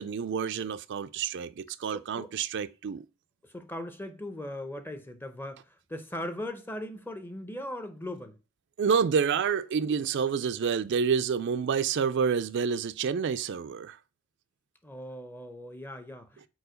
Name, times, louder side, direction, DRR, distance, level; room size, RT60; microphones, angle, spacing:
voice 1, 0.0-3.1 8.8-14.0, right 6 dB, 55° right, 0.4 m, -28 dB
voice 2, 1.8-2.3 3.5-8.4 14.8-16.5, left 1 dB, 10° left, 0.6 m, -39 dB
4.7 x 4.3 x 5.0 m
head